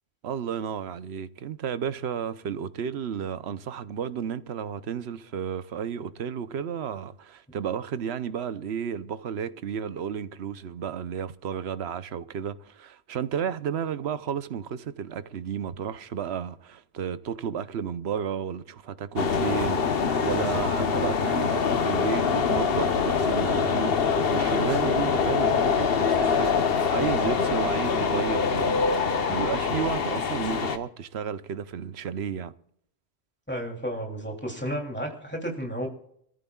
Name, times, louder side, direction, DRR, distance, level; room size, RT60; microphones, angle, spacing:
voice 1, 0.2-32.5, right 8 dB, 80° right, 1.0 m, -32 dB
sound 1, 19.2-30.8, left 5 dB, 65° left, 1.2 m, -24 dB
voice 2, 33.5-35.9, equal, 10° left, 3.0 m, -32 dB
26.0 x 14.5 x 2.4 m
omnidirectional pair, 1.1 m